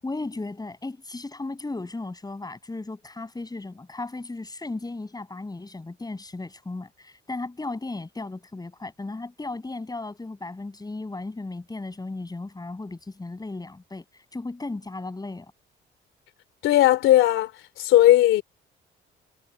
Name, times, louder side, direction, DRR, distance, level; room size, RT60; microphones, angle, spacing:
voice 1, 0.0-14.0 14.3-15.5, left 2 dB, 20° left, 7.7 m, -35 dB
voice 2, 16.6-17.5 17.8-18.4, left 14 dB, 90° left, 3.3 m, -17 dB
cardioid pair, 90°, 20 cm